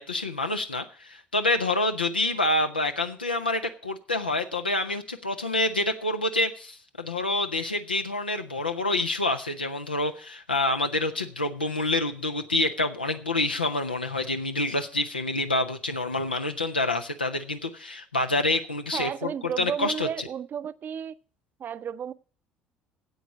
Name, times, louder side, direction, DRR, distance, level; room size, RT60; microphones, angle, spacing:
voice 1, 0.0-19.3 19.6-20.3, left 2 dB, 85° left, 0.7 m, -27 dB
voice 2, 18.9-21.1 21.6-22.1, right 8 dB, 40° right, 0.6 m, -32 dB
9.4 x 8.1 x 8.4 m
figure-of-eight pair, 55°, 5 cm